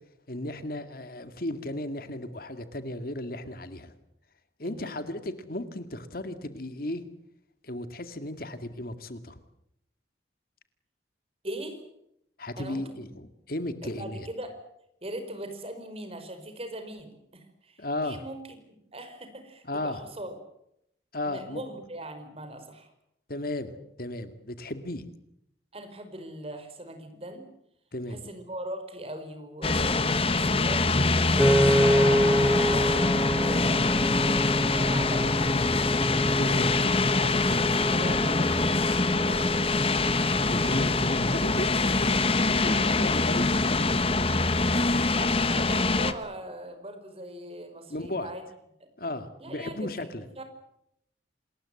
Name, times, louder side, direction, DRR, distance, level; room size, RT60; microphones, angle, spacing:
voice 1, 0.3-3.9 4.6-7.1 7.6-9.4 12.4-14.3 17.8-18.2 19.6-20.0 21.1-21.6 23.3-23.7 24.0-25.0 27.9-28.2 36.4-36.8 40.4-44.3 47.9-48.3 49.0-50.2, left 1 dB, 55° left, 10 dB, 2.1 m, -35 dB
voice 2, 4.6-5.0 11.4-11.8 12.6-13.1 13.8-14.6 15.0-18.4 18.7-20.3 21.2-22.9 25.7-27.5 28.1-30.9 31.3-33.8 34.3-36.1 36.4-39.9 45.1-48.4 48.8-48.9 49.4-50.1 50.4-50.5, right 1 dB, 35° right, 8 dB, 4.9 m, -40 dB
sound 1, 29.6-46.1, left 3 dB, 35° left, 1.3 m, -24 dB
Piano, 31.4-43.6, equal, 5° left, 1.0 m, -28 dB
27.5 x 20.5 x 7.8 m, 0.78 s
head